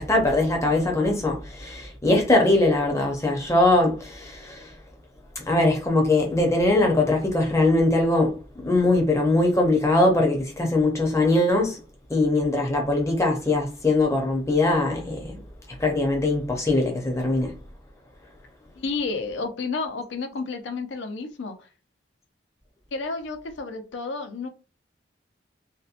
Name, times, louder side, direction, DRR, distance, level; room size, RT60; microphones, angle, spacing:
voice 1, 0.0-4.7 5.5-11.8 12.1-15.4 15.8-17.6, left 2 dB, 15° left, 0.5 m, -21 dB
voice 2, 18.7-21.7 22.9-24.5, left 4 dB, 75° left, 0.5 m, -31 dB
2.7 x 2.1 x 2.4 m
head